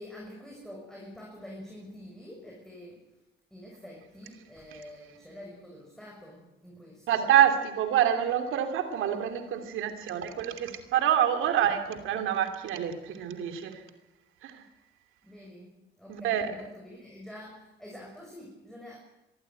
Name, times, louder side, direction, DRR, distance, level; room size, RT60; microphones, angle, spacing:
voice 1, 0.0-3.1 3.5-7.2 15.2-19.0, left 1 dB, ahead, -2 dB, 6.4 m, -47 dB
voice 2, 7.1-13.8 14.4-14.6 16.1-16.5, right 10 dB, 85° right, 7 dB, 2.9 m, -26 dB
23.0 x 15.0 x 9.2 m, 1.0 s
cardioid pair, 90°, 20 cm